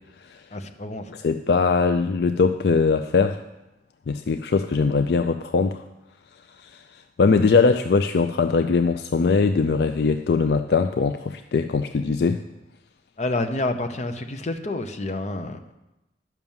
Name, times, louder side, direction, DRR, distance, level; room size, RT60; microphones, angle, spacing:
voice 1, 0.5-1.1 13.2-15.6, left 2 dB, 40° left, 6 dB, 0.8 m, -28 dB
voice 2, 1.1-3.4 4.1-5.8 6.6-12.4, left 4 dB, 60° left, 8 dB, 0.4 m, -21 dB
11.0 x 6.0 x 7.2 m, 0.97 s
head